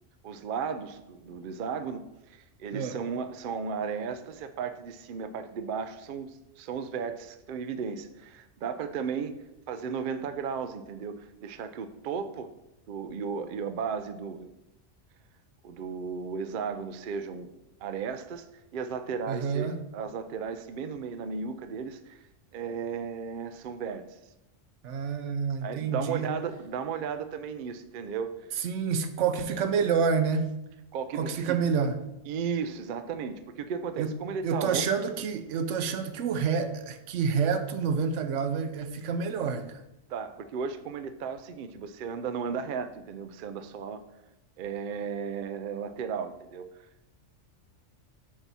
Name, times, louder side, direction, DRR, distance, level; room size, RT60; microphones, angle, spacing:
voice 1, 0.2-9.4 9.7-12.5 12.9-14.5 15.6-17.5 17.8-19.7 19.9-22.2 22.5-24.2 25.6-28.3 30.9-31.6 32.3-34.8 40.1-44.0 44.6-46.8, right 6 dB, 60° right, 10 dB, 0.5 m, -35 dB
voice 2, 19.3-19.8 24.8-26.4 28.6-30.5 31.1-31.9 34.0-34.1 34.4-39.8, right 6 dB, 80° right, 9 dB, 0.9 m, -28 dB
7.5 x 2.7 x 6.0 m, 0.89 s
omnidirectional pair, 1.3 m